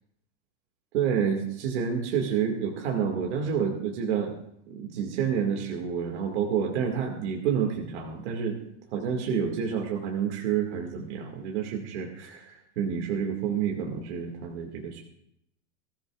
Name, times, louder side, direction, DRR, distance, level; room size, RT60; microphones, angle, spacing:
voice 1, 0.9-4.3 4.7-8.6 8.9-15.0, right 7 dB, 65° right, 0 dB, 2.2 m, -29 dB
21.0 x 14.0 x 2.4 m, 0.76 s
supercardioid pair, 175°, 36 cm